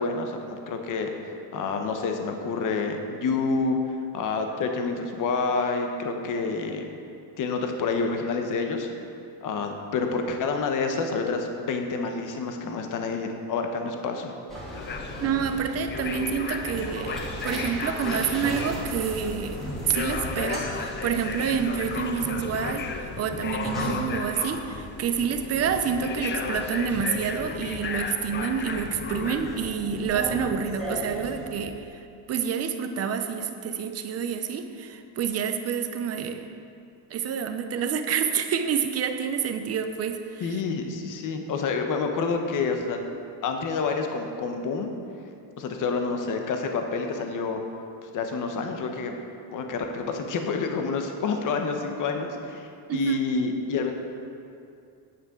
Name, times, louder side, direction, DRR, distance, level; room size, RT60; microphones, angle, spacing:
voice 1, 0.0-3.8 4.1-6.9 7.4-8.9 9.4-14.3 40.4-43.0 43.4-44.9 45.6-47.6 48.0-49.1 49.5-53.9, left 4 dB, 45° left, 4 dB, 0.9 m, -28 dB
sound 1, 14.5-31.7, equal, ahead, 2.3 m, -38 dB
sound 2, 14.7-29.8, left 5 dB, 25° left, 0.4 m, -34 dB
voice 2, 15.2-19.6 19.8-36.5 37.1-40.6 52.9-53.2, right 7 dB, 35° right, 8 dB, 0.6 m, -28 dB
9.6 x 8.8 x 3.7 m, 2.5 s
cardioid pair, 150°, 46 cm